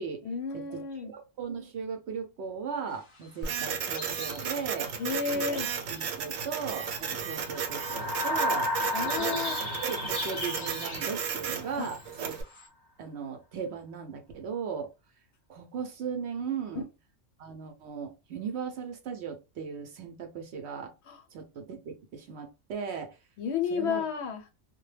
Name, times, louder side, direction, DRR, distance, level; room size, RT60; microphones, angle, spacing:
voice 1, 0.2-1.1 5.0-5.7 8.9-9.6 11.8-11.9 16.7-16.8 21.1-21.2 23.4-24.4, left 6 dB, 65° left, 5 dB, 0.8 m, -32 dB
voice 2, 1.1-4.9 5.3-5.4 5.9-6.9 7.2-8.7 9.0-9.4 9.8-12.3 13.0-14.9 15.5-16.9 17.4-20.9 21.3-23.2 23.7-24.0, right 6 dB, 65° right, 5 dB, 0.8 m, -37 dB
sound 1, 2.9-12.7, left 2 dB, 30° left, 0.6 m, -44 dB
Printer, 3.4-12.4, right 7 dB, 90° right, 1.0 m, -34 dB
sound 2, 7.3-11.9, left 1 dB, 20° right, 0.7 m, -33 dB
2.2 x 2.1 x 3.1 m, 0.26 s
omnidirectional pair, 1.3 m